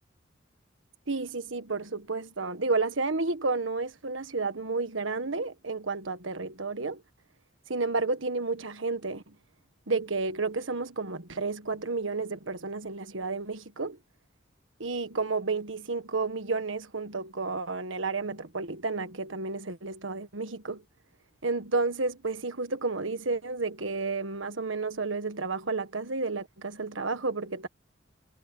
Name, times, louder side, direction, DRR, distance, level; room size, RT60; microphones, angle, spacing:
voice 1, 1.1-7.0 7.7-9.3 9.9-14.0 14.8-20.8 21.4-27.7, right 3 dB, 85° right, 1.5 m, -31 dB
head